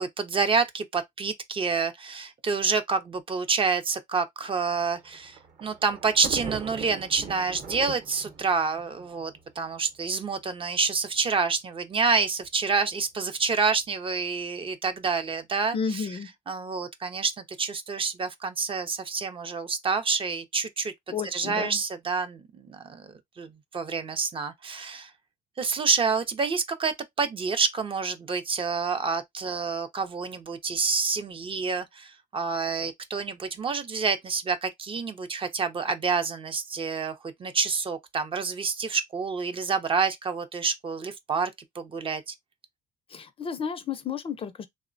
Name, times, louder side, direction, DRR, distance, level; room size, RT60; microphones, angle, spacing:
voice 1, 0.0-16.2 16.5-17.3 17.6-25.1 25.6-42.3, right 5 dB, 30° right, 0.5 m, -28 dB
Thunder, 4.8-10.1 10.9-11.0 11.3-11.4 12.4-12.7, right 5 dB, 50° right, 0.8 m, -41 dB
voice 2, 15.7-16.3 21.1-21.8 43.1-44.7, left 6 dB, 35° left, 0.4 m, -32 dB
3.0 x 2.0 x 2.5 m
cardioid pair, 110°, 17 cm